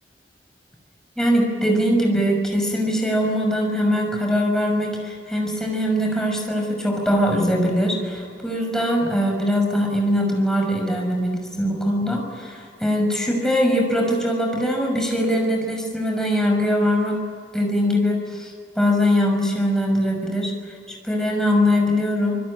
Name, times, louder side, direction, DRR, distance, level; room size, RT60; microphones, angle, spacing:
voice 1, 1.2-17.2 17.5-22.4, equal, 5° left, 1 dB, 6.1 m, -22 dB
26.5 x 21.0 x 10.0 m, 2.1 s
head